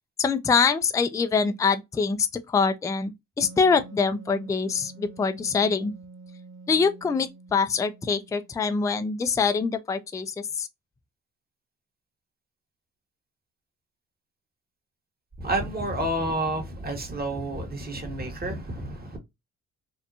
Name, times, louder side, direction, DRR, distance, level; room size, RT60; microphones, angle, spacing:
voice 1, 0.2-5.9 6.7-10.7, left 5 dB, 10° left, 0.3 m, -24 dB
Wind instrument woodwind instrument, 3.4-8.8, right 3 dB, 70° right, 1.4 m, -47 dB
voice 2, 15.4-19.2, right 1 dB, 25° right, 1.2 m, -30 dB
2.7 x 2.1 x 2.5 m
supercardioid pair, 50°, 36 cm